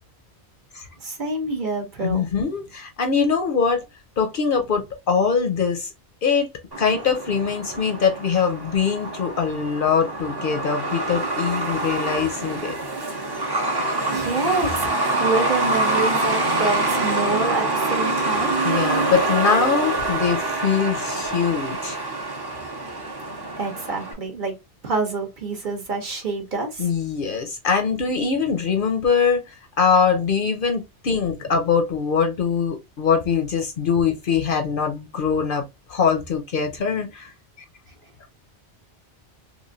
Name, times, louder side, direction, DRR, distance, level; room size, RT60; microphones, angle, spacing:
voice 1, 1.0-2.3 13.8-14.9 15.2-18.5 23.6-24.5 24.8-26.8, right 3 dB, 50° right, 0.9 m, -27 dB
voice 2, 2.0-3.8 4.2-5.9 6.2-6.5 6.8-12.8 13.4-13.5 18.3-22.0 26.8-37.3, left 6 dB, 60° left, 0.7 m, -23 dB
Truck, 6.7-24.1, right 2 dB, 25° right, 0.6 m, -25 dB
3.1 x 2.5 x 2.5 m
omnidirectional pair, 1.2 m